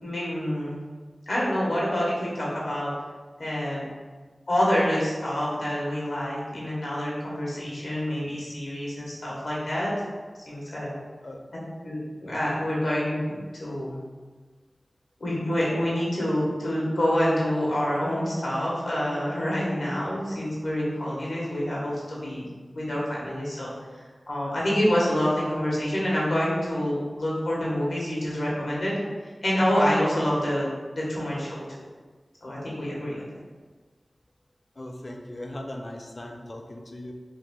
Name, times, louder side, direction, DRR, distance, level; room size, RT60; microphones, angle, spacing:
voice 1, 0.0-0.8 1.3-2.9 3.4-3.8 4.5-9.9 10.5-11.0 11.8-14.0 15.2-22.5 22.7-29.0 29.4-30.7 30.9-31.6 32.4-33.2, equal, 85° left, -5 dB, 1.1 m, -27 dB
voice 2, 34.8-37.1, left 1 dB, 50° left, 2 dB, 0.5 m, -38 dB
3.2 x 2.6 x 3.6 m, 1.4 s
wide cardioid pair, 45°, 0 cm